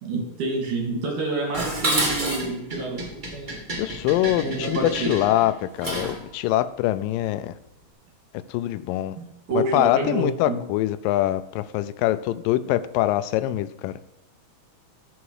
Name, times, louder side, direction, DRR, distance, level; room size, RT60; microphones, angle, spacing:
voice 1, 0.0-3.6 4.4-5.1 9.5-10.6, right 3 dB, 65° right, 1 dB, 3.8 m, -28 dB
Dishes pots and pans, 1.5-6.2, right 1 dB, 30° right, 0.8 m, -29 dB
voice 2, 3.8-7.6 8.5-9.2 9.6-13.9, left 14 dB, 85° left, 14 dB, 2.2 m, -24 dB
14.0 x 5.8 x 4.8 m, 0.83 s
omnidirectional pair, 3.9 m